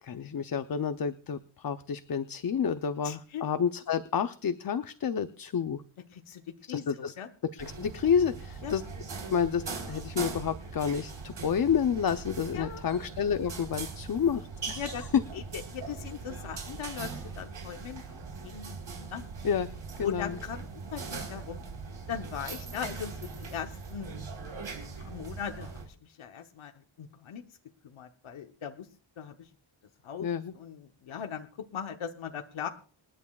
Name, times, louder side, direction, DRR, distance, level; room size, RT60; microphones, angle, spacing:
voice 1, 0.0-5.8 6.6-7.1 7.4-8.8 9.3-15.2 19.4-19.7 20.0-20.4 30.2-30.5, left 7 dB, 45° left, 11 dB, 0.6 m, -29 dB
voice 2, 3.0-3.4 6.1-7.3 8.6-8.7 12.5-13.0 14.8-15.1 15.3-18.0 18.4-19.3 20.0-21.6 22.1-24.2 24.9-26.7 27.0-27.4 27.8-28.9 29.2-29.5 30.0-30.3 30.5-32.7, left 8 dB, 75° left, 5 dB, 1.0 m, -39 dB
sound 1, 7.6-25.8, right 4 dB, 75° right, 4.1 m, -41 dB
27.0 x 11.0 x 2.3 m, 0.40 s
wide cardioid pair, 140°, 49 cm